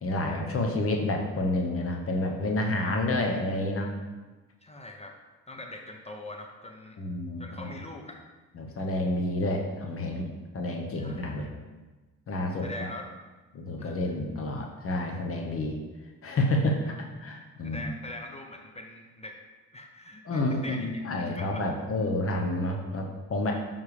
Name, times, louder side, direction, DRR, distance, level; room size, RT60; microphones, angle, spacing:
voice 1, 0.0-3.9 7.0-7.8 8.6-10.3 10.5-11.5 12.3-12.9 13.5-15.8 16.2-17.9 20.3-23.5, left 1 dB, 50° left, 2 dB, 1.0 m, -29 dB
voice 2, 4.6-5.2 5.5-7.0 7.4-8.2 10.9-11.4 12.6-13.0 13.8-13.9 16.9-17.0 17.6-19.4 19.7-21.0 21.4-21.7, left 2 dB, 20° left, 3 dB, 0.7 m, -42 dB
6.9 x 5.5 x 3.3 m, 1.2 s
cardioid pair, 90°, 30 cm